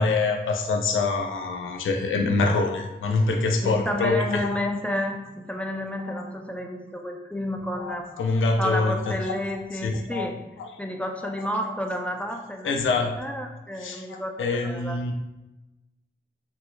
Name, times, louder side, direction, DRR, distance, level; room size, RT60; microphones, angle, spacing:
voice 1, 0.0-4.7 6.1-6.2 7.8-9.4 9.8-10.3 10.6-10.7 12.6-13.2 13.8-15.1, left 3 dB, 90° left, 3 dB, 0.4 m, -25 dB
voice 2, 3.6-8.1 8.6-10.4 10.8-15.1, left 1 dB, 5° left, 2 dB, 0.3 m, -31 dB
3.4 x 2.1 x 3.1 m, 1.0 s
cardioid pair, 65°, 20 cm